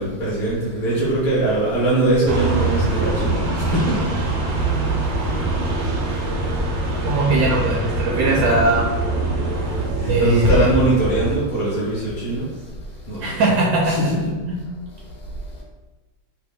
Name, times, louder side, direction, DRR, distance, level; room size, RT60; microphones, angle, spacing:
voice 1, 0.0-4.0 4.5-4.7 9.9-12.5 13.1-13.4 13.8-14.4, right 2 dB, 35° left, -7 dB, 0.7 m, -21 dB
sound 1, 2.3-11.4, right 2 dB, 90° right, 1.4 m, -23 dB
voice 2, 7.0-8.8 10.0-10.7 13.2-14.0 14.5-14.6, right 2 dB, 70° right, -3 dB, 0.8 m, -20 dB
3.2 x 2.2 x 3.5 m, 1.1 s
omnidirectional pair, 2.0 m